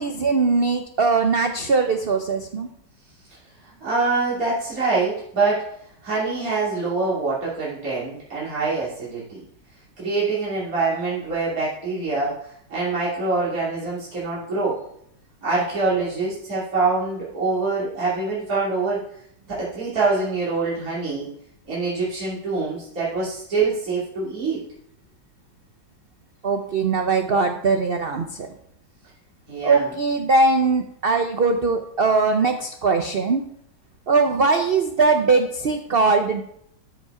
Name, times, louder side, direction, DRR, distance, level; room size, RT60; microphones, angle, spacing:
voice 1, 0.0-2.7 26.4-28.5 29.6-33.4 34.1-36.4, right 4 dB, 70° right, 6 dB, 0.5 m, -20 dB
voice 2, 3.8-5.6 6.0-9.4 10.0-12.4 12.7-14.8 15.4-19.0 19.5-21.3 21.7-24.6 29.5-29.9, right 3 dB, 50° right, -8 dB, 3.2 m, -25 dB
13.0 x 5.3 x 4.8 m, 0.72 s
omnidirectional pair, 1.9 m